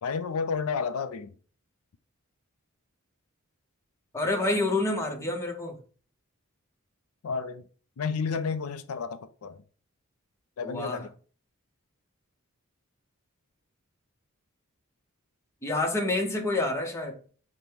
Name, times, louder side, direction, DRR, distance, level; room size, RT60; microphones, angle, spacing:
voice 1, 0.0-1.3 4.5-4.7 7.2-7.6 8.0-9.6 10.6-11.1, left 5 dB, 75° left, 0.4 m, -31 dB
voice 2, 4.1-5.8 10.6-11.0 15.6-17.2, left 2 dB, 15° left, 0.8 m, -28 dB
5.2 x 2.1 x 4.4 m
head